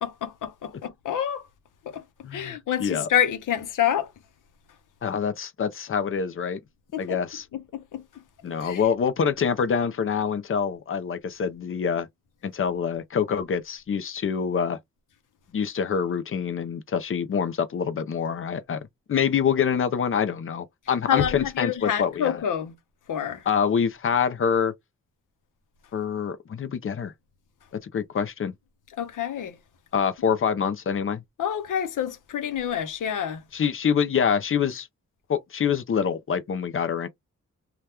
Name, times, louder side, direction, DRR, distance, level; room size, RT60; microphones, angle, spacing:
voice 1, 0.0-1.4 1.8-2.0 2.3-4.1 6.9-7.2 7.5-8.0 8.5-8.8 21.1-22.7 23.1-23.4 29.0-29.6 31.4-33.4, left 9 dB, 85° left, 0.8 m, -28 dB
voice 2, 2.2-3.1 5.0-6.6 7.0-7.4 8.4-12.1 12.4-14.8 15.5-22.4 23.5-24.7 25.9-27.1 27.8-28.5 29.9-31.2 33.5-34.9 35.3-37.1, left 7 dB, 45° left, 0.6 m, -26 dB
2.8 x 2.3 x 3.3 m
wide cardioid pair, 115°, 31 cm